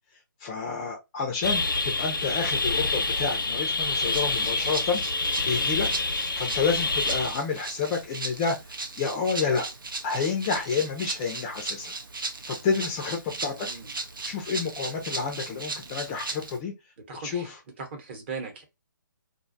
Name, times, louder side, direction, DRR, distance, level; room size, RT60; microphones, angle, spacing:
voice 1, 0.4-5.0 5.5-5.9 6.3-8.6 9.0-9.7 10.0-11.9 12.2-13.7 14.3-16.7 17.2-17.6, left 5 dB, 20° left, 0.4 m, -29 dB
sound 1, 1.4-7.4, left 3 dB, 90° left, 0.6 m, -27 dB
Rattle (instrument), 4.0-16.6, right 3 dB, 85° right, 0.6 m, -37 dB
voice 2, 13.5-13.9 17.1-17.5 17.8-18.6, right 5 dB, 35° right, 0.9 m, -38 dB
2.5 x 2.2 x 2.5 m
hypercardioid pair, 155°, 11 cm